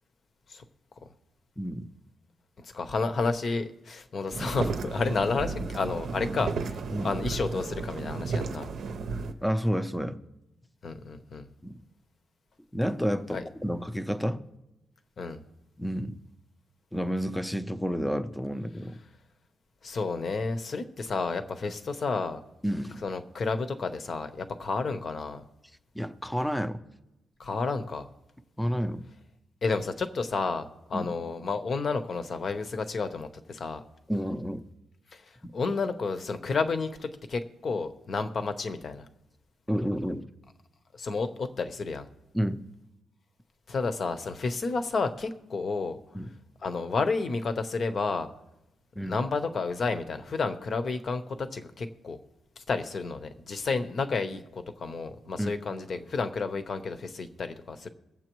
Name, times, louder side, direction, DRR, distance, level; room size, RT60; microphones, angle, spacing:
voice 1, 1.6-1.9 6.9-7.1 9.4-10.2 11.6-11.8 12.7-14.4 15.8-16.2 16.9-19.0 22.6-23.0 25.9-26.8 28.6-29.1 30.9-31.1 34.1-34.6 35.4-35.5 39.7-40.3 42.3-42.6 46.1-46.3 49.0-49.2 55.4-55.5, equal, 5° left, 9 dB, 0.6 m, -30 dB
voice 2, 2.6-8.7 10.8-11.5 13.3-13.4 15.2-15.4 19.8-22.4 23.0-25.4 27.4-28.1 29.6-33.8 35.1-35.2 35.5-39.1 41.0-42.1 43.7-46.0 46.6-48.3 49.1-52.2 52.7-57.9, left 4 dB, 45° left, 9 dB, 0.8 m, -31 dB
sound 1, 4.3-9.3, right 4 dB, 60° right, 0.6 m, -33 dB
22.0 x 7.5 x 3.1 m, 0.93 s
cardioid pair, 140°, 0 cm